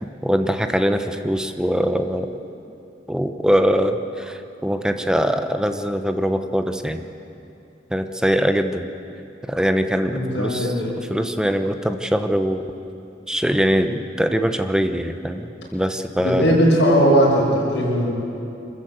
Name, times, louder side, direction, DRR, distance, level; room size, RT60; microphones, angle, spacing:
voice 1, 0.0-2.3 3.1-7.0 7.9-8.9 9.5-10.7 11.1-12.6 13.3-16.6, equal, 5° right, 7 dB, 0.9 m, -22 dB
voice 2, 10.1-10.7 16.2-18.1, equal, 80° left, -4 dB, 7.1 m, -18 dB
26.0 x 14.5 x 8.2 m, 2.8 s
head